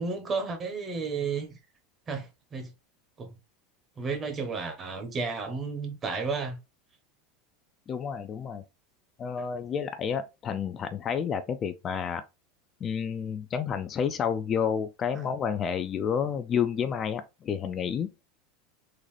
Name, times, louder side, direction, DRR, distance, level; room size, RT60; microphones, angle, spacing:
voice 1, 0.0-1.6 2.1-2.7 3.2-3.3 4.0-6.6 15.1-15.3, right 4 dB, 30° right, 1.0 m, -32 dB
voice 2, 7.9-8.6 9.2-12.2 12.8-18.1, left 7 dB, 35° left, 0.4 m, -30 dB
3.8 x 2.4 x 3.2 m
supercardioid pair, 120°, 0 cm